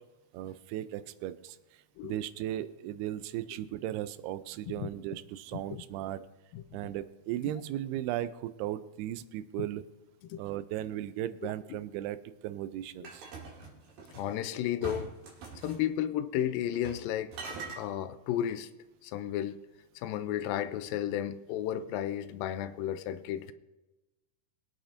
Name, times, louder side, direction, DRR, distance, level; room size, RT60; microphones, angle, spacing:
voice 1, 0.3-1.6 2.0-6.2 6.7-9.8 10.4-12.2 12.4-13.2, right 13 dB, 85° right, 13 dB, 2.5 m, -36 dB
voice 2, 5.5-5.8 6.5-6.6 9.6-9.7 10.2-10.4 11.4-11.5 14.1-15.1 15.6-18.7 19.0-19.6 20.0-23.5, left 11 dB, 85° left, 11 dB, 2.1 m, -33 dB
sound 1, 13.0-14.3 14.8-15.8 16.7-17.1 17.3-17.8, right 4 dB, 65° right, 3.9 m, -43 dB
22.0 x 8.6 x 2.6 m, 1.1 s
omnidirectional pair, 4.6 m